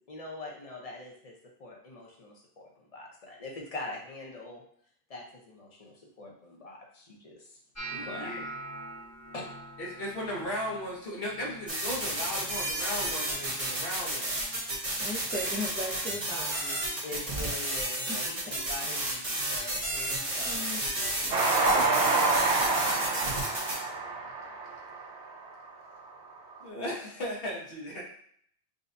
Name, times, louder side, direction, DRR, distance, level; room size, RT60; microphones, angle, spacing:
voice 1, 0.0-4.6 5.1-7.6 7.9-8.6 9.3-9.4 17.0-20.9 21.7-22.0, left 2 dB, 40° left, -1 dB, 0.9 m, -43 dB
sound 1, 7.7-13.8 14.1-14.6 15.0-15.5 16.2-16.4 18.1-18.2, right 2 dB, 15° left, 1.1 m, -45 dB
voice 2, 7.9-8.4 9.8-14.4 26.6-28.0, left 1 dB, 65° left, -3 dB, 1.3 m, -36 dB
sound 2, 11.7-23.8, right 1 dB, 35° right, 1.0 m, -32 dB
voice 3, 15.0-16.9 18.1-18.2 20.4-20.8, left 1 dB, 15° right, -4 dB, 0.5 m, -37 dB
Train, 21.3-25.7, right 3 dB, 70° right, 0.9 m, -27 dB
6.4 x 2.3 x 2.6 m, 0.63 s
omnidirectional pair, 1.0 m